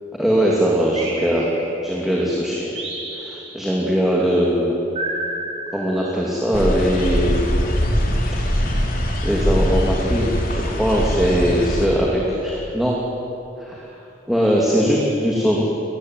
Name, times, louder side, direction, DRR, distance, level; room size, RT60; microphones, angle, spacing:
voice 1, 0.1-1.5 1.8-2.8 3.1-4.8 5.7-7.5 9.2-13.0 13.6-13.9 14.3-15.6, equal, ahead, -4 dB, 2.7 m, -20 dB
sound 1, 1.0-2.1 2.8-3.9 5.0-6.4, right 2 dB, 30° right, 5.9 m, -31 dB
sound 2, 6.5-11.9, equal, 50° left, 3.2 m, -22 dB
29.5 x 15.0 x 9.7 m, 2.9 s
head